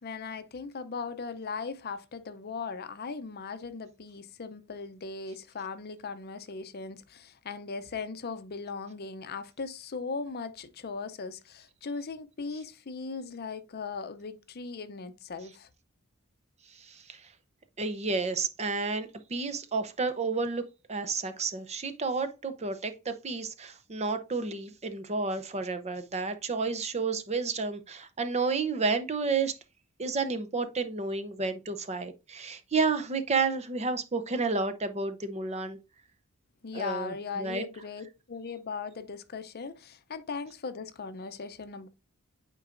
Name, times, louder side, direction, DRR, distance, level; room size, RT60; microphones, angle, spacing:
voice 1, 0.0-15.7 36.6-41.9, left 4 dB, 50° left, 0.6 m, -38 dB
voice 2, 16.7-17.3 17.8-20.6 20.9-29.5 30.0-35.8 36.7-37.6, right 4 dB, 30° right, 0.7 m, -31 dB
8.7 x 4.5 x 2.5 m
head